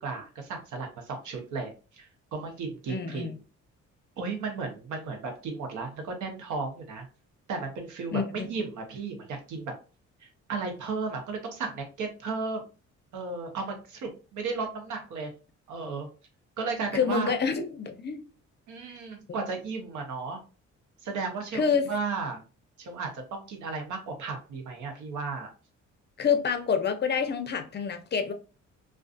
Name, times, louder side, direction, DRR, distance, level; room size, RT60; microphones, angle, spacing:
voice 1, 0.0-3.3 4.2-7.1 7.5-9.7 10.2-12.6 13.1-15.3 15.7-16.1 16.6-17.3 18.7-20.4 21.0-22.4 22.8-25.5, right 4 dB, 75° right, 0.8 m, -34 dB
voice 2, 2.9-3.3 8.1-8.5 16.9-18.2 19.3-19.4 21.5-21.9 26.2-28.3, left 6 dB, 35° left, 0.5 m, -27 dB
2.4 x 2.3 x 2.4 m
cardioid pair, 90°, 30 cm